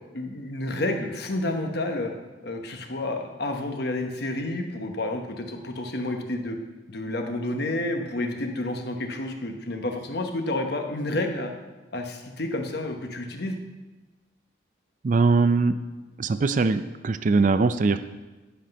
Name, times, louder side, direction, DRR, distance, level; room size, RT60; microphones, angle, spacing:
voice 1, 0.1-2.1 2.4-6.6 6.9-11.5 11.9-13.6, left 2 dB, 55° left, 4 dB, 1.0 m, -30 dB
voice 2, 15.0-15.7 16.2-18.0, right 4 dB, 40° right, 11 dB, 0.4 m, -21 dB
10.0 x 5.9 x 5.3 m, 1.2 s
head